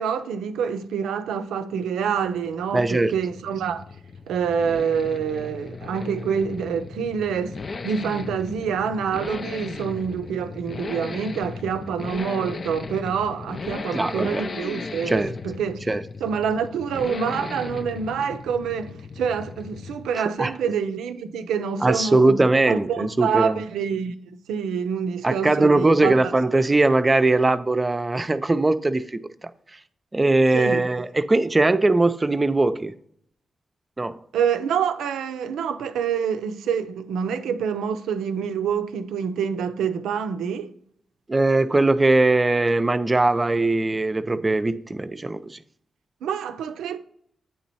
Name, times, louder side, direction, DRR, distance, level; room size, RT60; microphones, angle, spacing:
voice 1, 0.0-3.8 4.3-7.6 7.8-15.8 16.2-24.1 24.5-26.3 30.5-30.8 34.3-40.7 46.2-47.0, right 7 dB, 90° right, 0.4 m, -26 dB
Accelerating revving vroom, 2.0-20.2 20.5-20.6, left 4 dB, 55° left, 0.4 m, -36 dB
voice 2, 2.7-3.1 13.9-14.4 15.1-15.3 15.9-16.0 20.4-20.5 21.8-23.6 25.2-29.2 30.1-32.9 34.0-34.2 41.3-45.6, right 2 dB, 30° right, 0.4 m, -20 dB
8.6 x 3.0 x 4.1 m
supercardioid pair, 50°, 0 cm